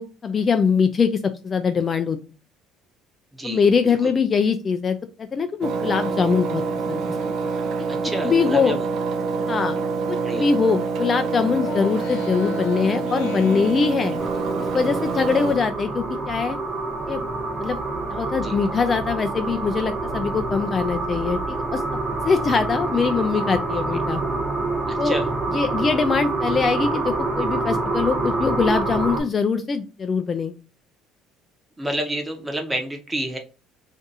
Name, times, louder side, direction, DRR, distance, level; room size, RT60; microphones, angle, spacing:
voice 1, 0.0-2.2 3.4-6.6 6.9-7.0 8.2-8.8 9.5-9.8 10.1-14.2 14.7-16.6 17.1-17.2 17.6-17.8 18.1-22.0 22.2-24.2 25.0-25.2 25.5-30.5, left 5 dB, 30° left, 8 dB, 0.3 m, -22 dB
voice 2, 3.3-4.1 7.9-8.9 10.2-10.5 18.4-18.6 24.9-25.3 31.8-33.4, right 1 dB, 10° right, 4 dB, 0.8 m, -29 dB
Engine, 5.6-15.6, right 4 dB, 60° right, 0.5 m, -26 dB
Speech synthesizer, 11.4-14.9, left 7 dB, 85° left, 0.6 m, -36 dB
sound 1, 14.2-29.2, right 2 dB, 30° right, 1.1 m, -27 dB
2.6 x 2.4 x 3.9 m, 0.33 s
cardioid pair, 120°, 0 cm